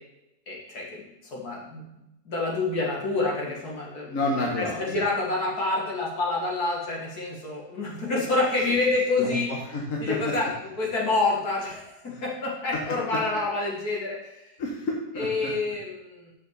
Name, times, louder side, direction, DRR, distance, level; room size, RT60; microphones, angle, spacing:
voice 1, 0.5-1.8 2.3-9.5 10.0-10.5 10.8-14.5 15.2-16.3, left 3 dB, 75° left, -3 dB, 2.4 m, -28 dB
voice 2, 4.1-5.0 9.2-10.3 12.1-12.2 14.6-15.5, left 2 dB, 60° left, -1 dB, 1.5 m, -30 dB
6.2 x 5.7 x 6.7 m, 0.95 s
omnidirectional pair, 1.7 m